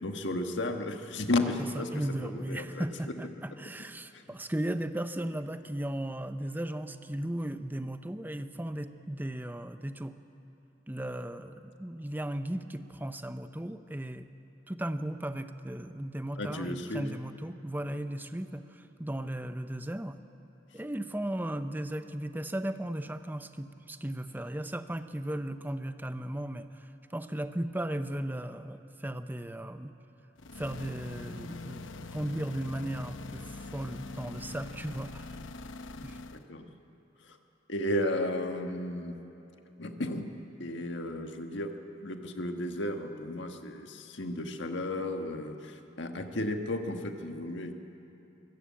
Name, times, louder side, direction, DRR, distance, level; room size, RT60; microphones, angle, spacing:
voice 1, 0.0-1.9 2.2-2.8 16.4-17.1 36.3-36.7 37.7-39.2 39.8-40.3 40.6-41.7 42.0-47.7, left 1 dB, 70° left, 5 dB, 1.6 m, -33 dB
voice 2, 1.6-10.2 10.9-14.3 14.7-20.2 20.7-30.0 30.6-35.3 36.0-36.2, right 1 dB, 10° right, 9 dB, 0.7 m, -36 dB
sound 1, 30.4-36.5, left 3 dB, 85° left, 0.9 m, -43 dB
24.0 x 15.0 x 8.6 m, 2.8 s
head